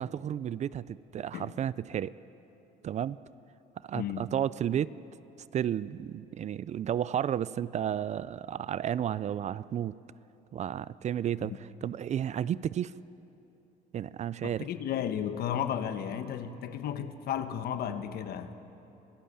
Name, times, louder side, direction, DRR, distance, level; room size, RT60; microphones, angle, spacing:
voice 1, 0.0-2.1 2.8-3.2 3.9-4.9 5.5-9.9 10.5-11.5 11.8-12.9 13.9-14.7, right 10 dB, 45° right, 18 dB, 0.4 m, -32 dB
voice 2, 3.9-4.3 11.4-11.6 14.4-18.5, left 9 dB, 65° left, 9 dB, 1.3 m, -34 dB
26.0 x 14.5 x 8.8 m, 3.0 s
cardioid pair, 110°, 17 cm